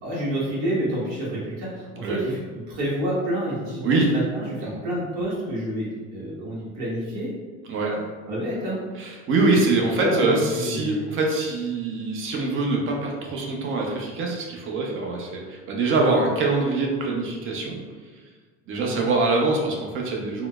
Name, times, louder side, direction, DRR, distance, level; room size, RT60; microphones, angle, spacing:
voice 1, 0.0-2.4 2.7-7.3 8.3-8.8 10.0-11.1 15.9-16.1 18.7-19.0, equal, 65° right, -7 dB, 1.3 m, -28 dB
voice 2, 3.8-4.1 4.6-4.8 7.7-8.0 9.0-17.8 18.7-20.5, right 3 dB, 40° right, 0 dB, 0.7 m, -24 dB
3.8 x 2.1 x 2.3 m, 1.4 s
supercardioid pair, 110°, 33 cm